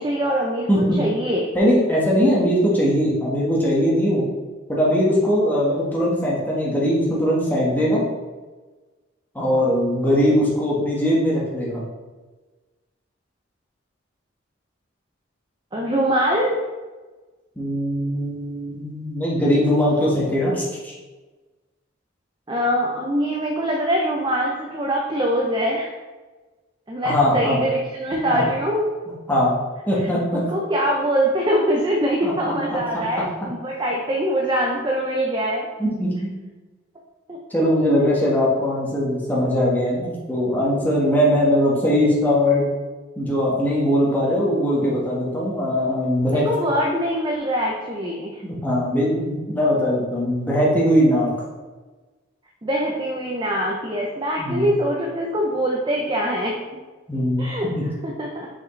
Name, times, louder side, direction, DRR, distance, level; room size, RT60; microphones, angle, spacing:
voice 1, 0.0-0.7 1.0-1.4 15.7-16.6 22.5-25.9 26.9-28.9 30.5-35.7 37.3-37.4 46.2-48.4 52.6-56.6 57.4-57.7 58.0-58.5, equal, 25° right, -2 dB, 0.6 m, -23 dB
voice 2, 0.7-1.0 1.5-4.3 4.7-8.0 9.3-11.8 17.6-20.9 27.0-27.6 28.2-28.4 29.3-29.5 29.9-30.4 32.2-32.5 35.8-36.3 37.5-42.7 43.2-46.5 48.4-51.3 54.4-54.7 57.1-57.4 57.7-57.8, equal, 10° left, -6 dB, 1.4 m, -20 dB
6.0 x 5.2 x 3.2 m, 1.3 s
head